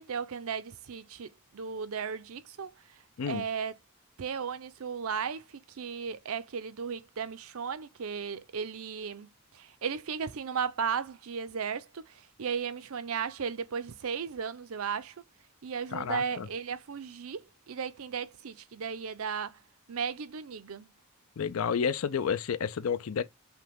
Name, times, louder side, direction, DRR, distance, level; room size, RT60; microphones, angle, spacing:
voice 1, 0.0-2.7 3.3-3.7 4.2-9.3 9.5-15.1 15.6-19.6 19.9-20.9, right 6 dB, 70° right, 0.5 m, -35 dB
voice 2, 15.9-16.5 21.4-23.2, left 6 dB, 70° left, 0.4 m, -30 dB
5.7 x 2.2 x 3.4 m
head